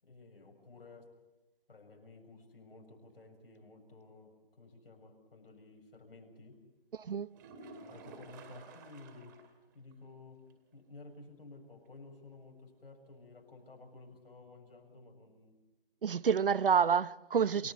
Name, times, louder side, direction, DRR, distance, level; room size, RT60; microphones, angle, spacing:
voice 1, 0.0-1.1 1.7-6.6 7.9-9.4 9.7-10.4 10.7-15.5 16.4-16.5 17.6-17.7, left 3 dB, 80° left, 7.3 m, -54 dB
sound 1, 7.3-9.6 9.9-10.0 10.5-10.6 14.3-14.4, right 3 dB, 20° right, 2.2 m, -52 dB
voice 2, 16.0-17.7, right 7 dB, 65° right, 0.9 m, -28 dB
28.5 x 16.5 x 8.5 m
hypercardioid pair, 170°, 29 cm